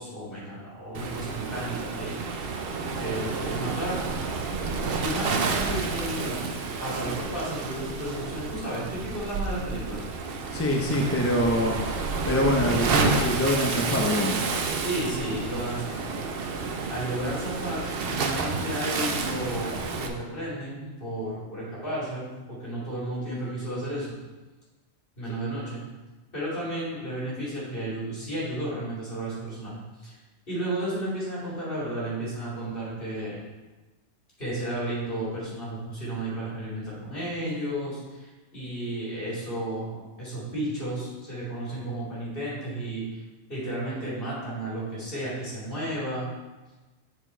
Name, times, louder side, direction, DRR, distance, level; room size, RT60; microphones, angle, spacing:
voice 1, 0.0-2.2 2.4-2.6 3.0-4.0 5.0-10.0 14.7-24.1 25.2-25.8 26.3-30.1 30.5-33.4 34.4-43.2 43.5-46.3, right 1 dB, 45° left, -7 dB, 2.8 m, -33 dB
Waves surf, 0.9-20.1, right 4 dB, 55° right, 0.8 m, -30 dB
voice 2, 10.5-11.8 12.3-14.5, equal, 20° left, 0 dB, 0.4 m, -24 dB
7.0 x 4.5 x 4.4 m, 1.2 s
omnidirectional pair, 1.3 m